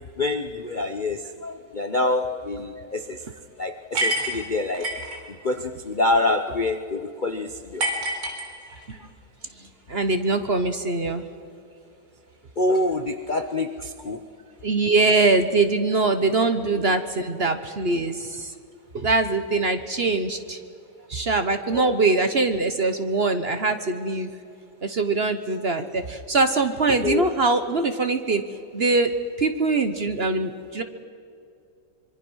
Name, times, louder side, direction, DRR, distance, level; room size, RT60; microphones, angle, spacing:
voice 1, 0.2-3.2 3.6-4.9 5.4-7.8 12.6-14.2 21.7-21.9 27.0-27.3, left 2 dB, 40° left, 7 dB, 0.7 m, -26 dB
sound 1, 3.9-5.2 7.8-9.0, right 1 dB, 75° right, 4.4 m, -27 dB
voice 2, 9.6-11.3 14.6-18.5 18.9-20.6 21.1-24.3 24.8-28.4 28.7-30.8, right 3 dB, 40° right, 9 dB, 1.1 m, -23 dB
25.5 x 23.5 x 6.3 m, 2.5 s
omnidirectional pair, 1.9 m